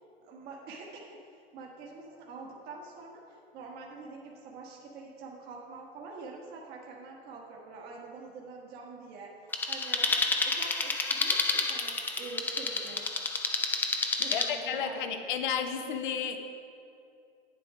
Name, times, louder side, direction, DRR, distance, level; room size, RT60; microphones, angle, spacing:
voice 1, 0.2-1.2 1.5-9.3 9.7-13.1 14.2-15.4, right 4 dB, 30° right, -2 dB, 1.3 m, -46 dB
sound 1, 9.5-14.5, left 4 dB, 5° left, 0.4 m, -30 dB
voice 2, 14.3-16.4, left 7 dB, 50° left, 7 dB, 1.0 m, -32 dB
9.0 x 7.8 x 5.0 m, 2.5 s
figure-of-eight pair, 105°, 31 cm